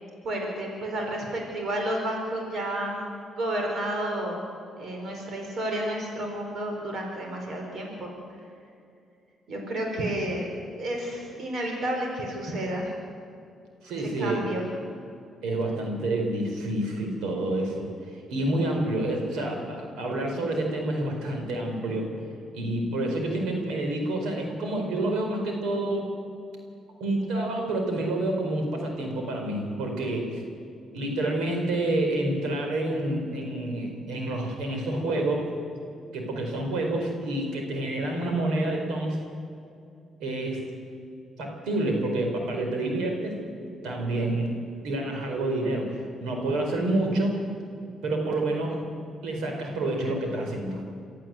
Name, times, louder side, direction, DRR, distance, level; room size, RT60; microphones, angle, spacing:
voice 1, 0.2-3.1 3.4-4.4 4.8-8.1 9.5-10.5 10.8-12.9 14.0-14.7, right 1 dB, 60° right, 1 dB, 4.8 m, -31 dB
voice 2, 13.8-14.4 15.4-17.9 18.3-22.1 22.5-26.1 27.0-30.4 30.9-35.5 36.1-39.2 40.2-40.6 41.4-43.3 43.8-44.5 44.8-47.4 48.0-48.8 49.2-50.8, right 1 dB, 90° right, 2 dB, 4.6 m, -28 dB
24.5 x 13.5 x 7.8 m, 2.5 s
cardioid pair, 90°, 0 cm